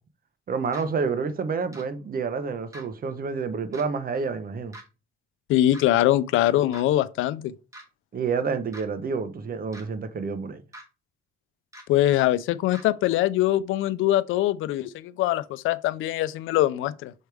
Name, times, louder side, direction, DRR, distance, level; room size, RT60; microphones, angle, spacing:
voice 1, 0.5-4.8 8.1-10.6, right 5 dB, 45° right, 1.0 m, -29 dB
sound 1, 0.7-0.8 1.7-1.8 2.7-2.9 3.7-3.9 4.7-4.8 5.7-5.9 6.7-6.9 7.7-7.8 8.7-8.8 9.7-9.9 10.7-10.8 11.7-11.8 12.7-12.8, right 1 dB, 15° right, 1.9 m, -43 dB
voice 2, 5.5-7.5 11.9-17.1, left 14 dB, 90° left, 0.5 m, -23 dB
6.4 x 4.6 x 3.4 m
cardioid pair, 90°, 20 cm